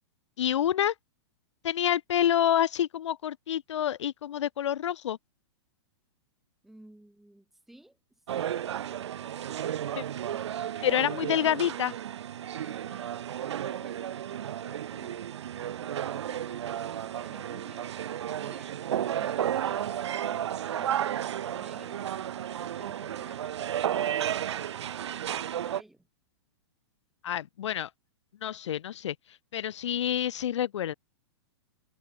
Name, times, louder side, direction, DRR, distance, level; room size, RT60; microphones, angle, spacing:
voice 1, 0.4-0.9 1.6-5.2 10.0-10.1 10.8-11.9 27.2-27.9 28.4-29.1 29.5-30.9, left 10 dB, 85° left, 0.7 m, -28 dB
voice 2, 6.6-8.6 10.2-11.2 12.5-18.0 18.4-24.0 24.6-26.1, right 1 dB, ahead, 5.5 m, -55 dB
sound 1, 8.3-25.8, right 10 dB, 70° right, 1.1 m, -33 dB
hypercardioid pair, 170°, 15 cm